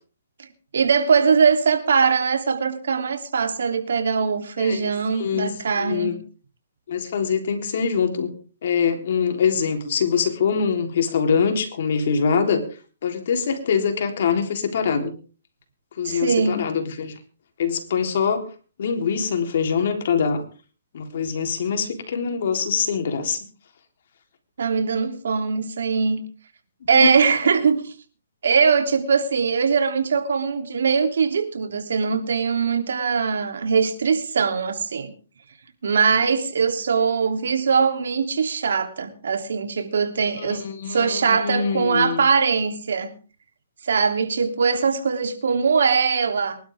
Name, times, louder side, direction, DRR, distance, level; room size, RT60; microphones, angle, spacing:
voice 1, 0.7-6.1 16.0-16.6 24.6-26.2 26.9-27.9 28.4-35.1 35.8-40.6 40.9-43.1 43.8-46.6, right 5 dB, 70° right, 3.1 m, -21 dB
voice 2, 4.6-4.9 5.2-5.5 5.8-6.2 6.9-8.3 8.6-12.6 13.0-15.1 16.0-17.2 17.6-18.5 18.8-20.4 20.9-23.4 26.9-27.1 40.4-42.2, left 6 dB, 55° left, 3.6 m, -23 dB
24.0 x 12.0 x 3.7 m
hypercardioid pair, 155°, 0 cm